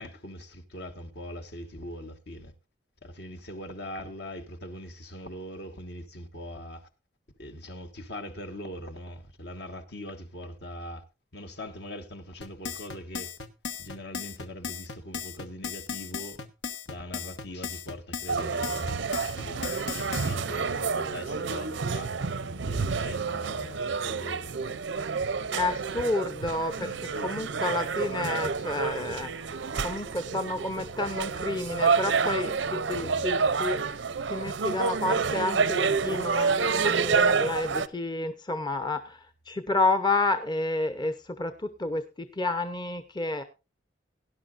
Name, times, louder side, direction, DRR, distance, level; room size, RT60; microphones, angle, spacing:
voice 1, 0.0-2.5 3.0-6.9 7.4-11.0 11.3-13.3 13.8-16.4 16.9-19.0 19.4-24.5 26.8-27.3 32.2-32.4 33.0-33.3, left 1 dB, 60° left, 1.4 m, -41 dB
sound 1, 12.4-20.3, left 6 dB, 80° left, 1.2 m, -36 dB
sound 2, 18.3-37.9, right 5 dB, 80° right, 0.6 m, -29 dB
voice 2, 25.5-26.9 27.2-33.8 34.3-43.4, left 2 dB, 25° left, 0.7 m, -30 dB
17.5 x 11.0 x 2.5 m
head